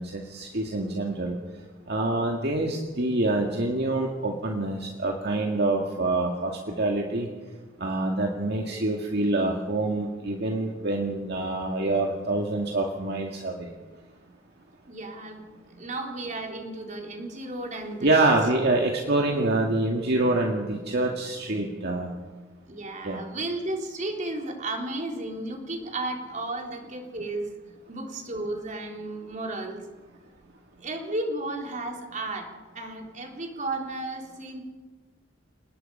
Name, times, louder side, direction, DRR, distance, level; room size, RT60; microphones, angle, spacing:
voice 1, 0.0-1.4 1.9-6.5 6.8-7.3 7.8-13.7 18.0-22.1 23.0-23.2, right 2 dB, 60° right, 1 dB, 2.1 m, -26 dB
voice 2, 14.9-15.4 15.8-18.4 22.7-27.5 27.9-29.8 30.8-34.6, right 2 dB, 40° right, 2 dB, 3.7 m, -33 dB
29.5 x 19.5 x 5.6 m, 1.3 s
head